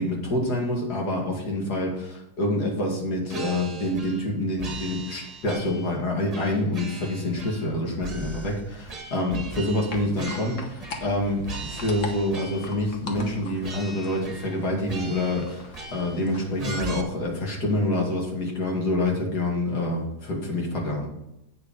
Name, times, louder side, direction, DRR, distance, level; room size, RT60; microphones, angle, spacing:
voice 1, 0.0-21.1, left 1 dB, 80° left, -1 dB, 2.8 m, -27 dB
sound 1, 3.3-4.3 4.6-6.0 6.3-7.7 8.0-11.2 11.4-12.8 13.2-13.4 13.6-14.6 14.9-16.2 16.6-17.0, right 3 dB, 30° right, 0.9 m, -38 dB
sound 2, 9.9-16.7, left 3 dB, 55° left, 1.4 m, -41 dB
8.5 x 6.5 x 5.2 m, 0.86 s
omnidirectional pair, 1.7 m